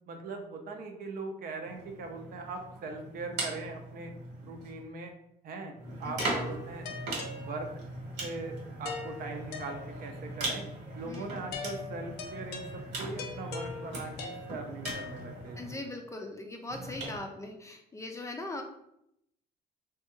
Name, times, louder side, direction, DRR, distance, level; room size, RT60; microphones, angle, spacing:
voice 1, 0.1-4.1 4.4-5.1 5.4-5.7 6.0-6.9 7.4-7.7 8.2-10.7 11.0-15.8, right 3 dB, 60° right, 4 dB, 0.6 m, -40 dB
sound 1, 1.7-4.9 5.8-15.8 16.7-17.2, right 2 dB, 85° right, 1.3 m, -40 dB
voice 2, 6.0-6.4 11.0-11.3 15.6-18.6, left 2 dB, 20° left, 3 dB, 0.4 m, -40 dB
sound 2, 6.2-8.0 8.8-10.3 11.5-15.6, left 4 dB, 75° left, 0.6 m, -43 dB
3.3 x 2.3 x 3.0 m, 0.76 s
cardioid pair, 110°, 17 cm